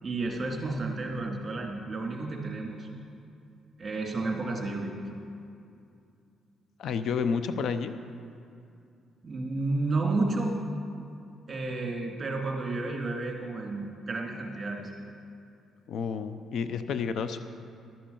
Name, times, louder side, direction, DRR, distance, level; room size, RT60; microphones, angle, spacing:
voice 1, 0.0-2.9 3.8-4.9 9.2-10.6 11.5-14.8, right 2 dB, 35° right, 0 dB, 2.4 m, -31 dB
voice 2, 6.8-7.9 15.9-17.4, left 6 dB, 70° left, 10 dB, 0.6 m, -30 dB
12.0 x 7.7 x 7.1 m, 2.5 s
cardioid pair, 90°, 0 cm